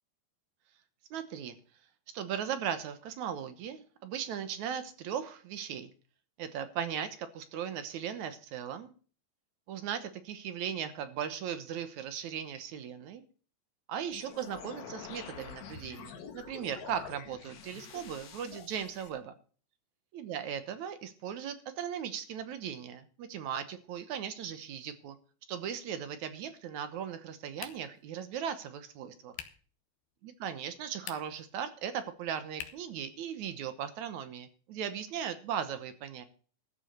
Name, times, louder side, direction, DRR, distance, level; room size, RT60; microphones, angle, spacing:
voice 1, 1.1-1.5 2.1-5.9 6.4-8.9 9.7-13.2 13.9-19.3 20.2-25.2 25.5-29.3 30.4-36.3, right 8 dB, 65° right, 10 dB, 2.1 m, -38 dB
sound 1, 14.1-19.1, left 7 dB, 55° left, 2.5 m, -47 dB
sound 2, 27.6-28.1 29.3-29.7 30.9-31.5 32.6-33.0, left 11 dB, 90° left, 3.0 m, -45 dB
14.0 x 7.2 x 6.6 m, 0.41 s
omnidirectional pair, 4.2 m